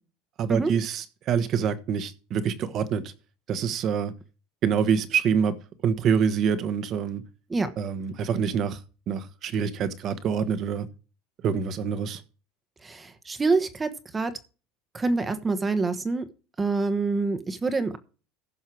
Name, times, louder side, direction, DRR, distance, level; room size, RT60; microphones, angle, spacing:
voice 1, 0.4-3.0 3.5-4.1 4.6-5.5 5.8-7.2 7.8-8.8 9.1-10.9 11.4-12.2, right 7 dB, 45° right, 1.3 m, -26 dB
voice 2, 12.8-14.3 14.9-16.3 16.6-18.0, right 3 dB, 20° right, 1.2 m, -26 dB
15.5 x 5.6 x 4.6 m
supercardioid pair, 115°, 0 cm